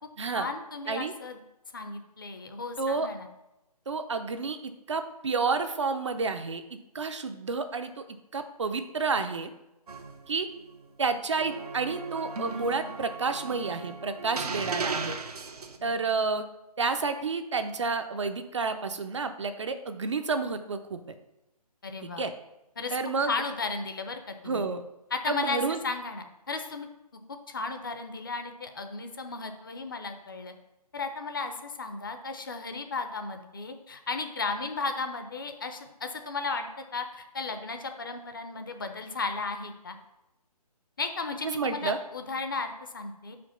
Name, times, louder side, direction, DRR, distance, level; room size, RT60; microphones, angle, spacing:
voice 1, 0.3-1.4 1.7-3.3 15.8-16.0 21.8-22.2 22.8-23.0 23.2-24.7 25.1-26.9 27.3-30.5 30.9-40.0 41.0-43.4, left 4 dB, 35° left, 6 dB, 0.6 m, -35 dB
voice 2, 2.8-3.1 3.9-6.6 6.9-7.9 8.3-9.5 10.3-10.5 11.0-15.2 15.8-16.4 16.8-21.0 22.0-22.3 22.9-23.3 24.5-24.8 25.3-25.8 41.6-42.0, right 4 dB, 50° right, 8 dB, 0.5 m, -30 dB
sound 1, 9.9-10.8 11.4-15.8, right 4 dB, 75° right, 0.9 m, -37 dB
5.1 x 4.5 x 5.6 m, 0.93 s
hypercardioid pair, 170°, 20 cm